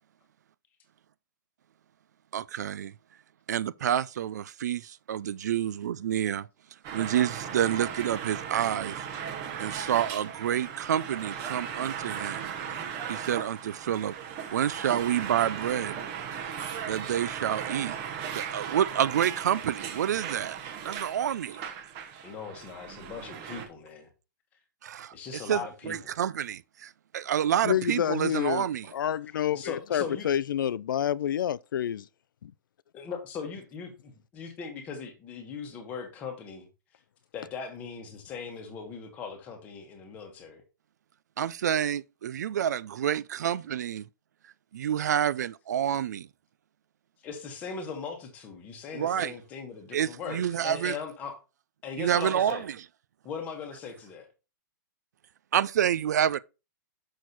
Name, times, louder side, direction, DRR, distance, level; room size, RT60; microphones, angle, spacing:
voice 1, 2.3-2.9 3.5-6.5 6.9-9.0 9.6-12.5 13.1-14.1 14.5-16.0 16.9-18.0 18.3-20.6 20.8-21.6 24.8-25.1 25.5-25.6 25.9-28.9 41.4-44.0 44.7-46.3 48.9-49.3 49.9-50.9 52.0-52.6 55.5-56.4, right 10 dB, 55° right, 0.4 m, -28 dB
sound 1, 6.8-23.7, right 8 dB, 25° right, 0.9 m, -37 dB
voice 2, 22.2-24.1 25.1-26.1 29.5-30.3 32.9-36.7 37.3-40.6 47.2-51.4 51.8-52.7 53.2-54.3, left 6 dB, 15° left, 1.2 m, -39 dB
voice 3, 27.6-32.0 32.4-32.5, left 10 dB, 90° left, 0.4 m, -28 dB
6.4 x 6.3 x 4.0 m
hypercardioid pair, 180°, 11 cm